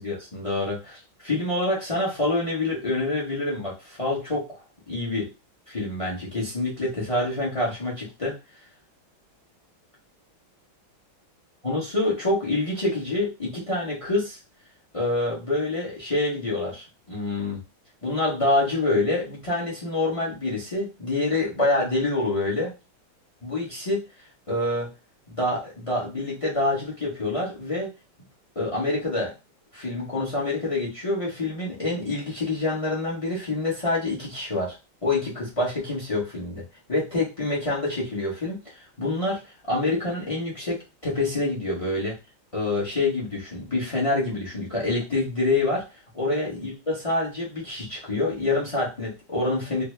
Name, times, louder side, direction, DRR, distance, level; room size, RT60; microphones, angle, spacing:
voice 1, 0.0-4.6 4.9-5.3 5.7-8.4 11.6-14.4 14.9-17.6 18.0-22.7 23.4-24.0 24.5-24.9 25.3-27.9 28.5-29.3 29.7-34.8 35.0-36.6 36.9-39.4 39.7-42.1 42.5-45.8 46.1-49.8, left 2 dB, 30° left, -4 dB, 0.6 m, -26 dB
4.0 x 2.1 x 3.2 m, 0.27 s
omnidirectional pair, 2.2 m